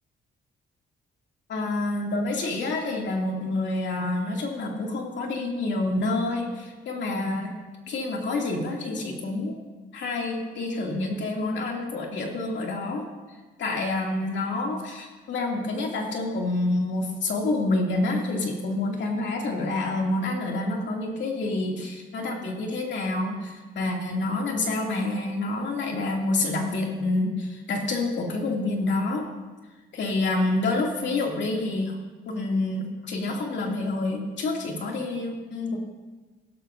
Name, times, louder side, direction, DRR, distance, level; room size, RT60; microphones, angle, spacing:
voice 1, 1.5-7.5 7.9-9.6 9.9-13.1 13.6-29.3 29.9-32.0 32.2-35.8, left 2 dB, 65° left, 0 dB, 2.5 m, -28 dB
16.5 x 13.0 x 2.6 m, 1.3 s
cardioid pair, 90°, 20 cm